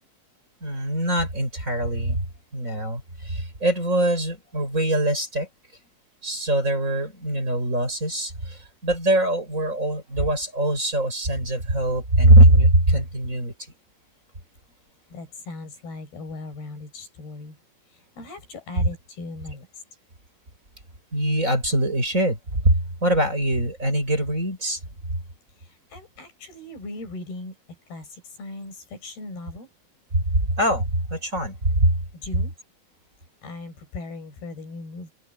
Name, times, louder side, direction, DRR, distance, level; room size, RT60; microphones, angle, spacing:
voice 1, 0.6-2.3 2.5-5.5 6.2-13.5 21.1-24.8 30.1-30.2 30.6-31.9, right 1 dB, 20° right, 6.3 m, -22 dB
voice 2, 15.1-17.6 17.9-19.7 25.6-29.7 32.1-32.5 33.4-35.1, left 2 dB, 90° left, 7.8 m, -38 dB
omnidirectional pair, 4.3 m